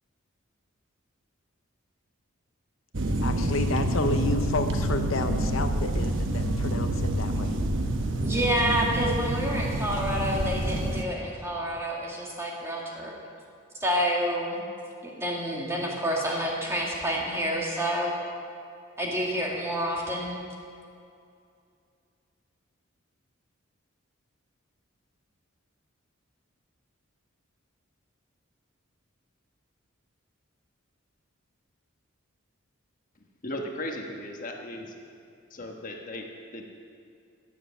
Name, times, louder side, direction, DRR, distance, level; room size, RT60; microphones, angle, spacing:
sound 1, 2.9-11.0, right 1 dB, 65° right, 1.0 m, -27 dB
voice 1, 3.2-7.6, left 3 dB, 70° left, 7 dB, 0.7 m, -31 dB
voice 2, 8.2-13.1 13.8-14.6 15.0-18.1 19.0-20.3, equal, 10° right, -2 dB, 1.8 m, -28 dB
voice 3, 33.4-34.9 35.5-36.6, left 1 dB, 40° left, 2 dB, 1.3 m, -36 dB
15.5 x 7.2 x 7.0 m, 2.5 s
head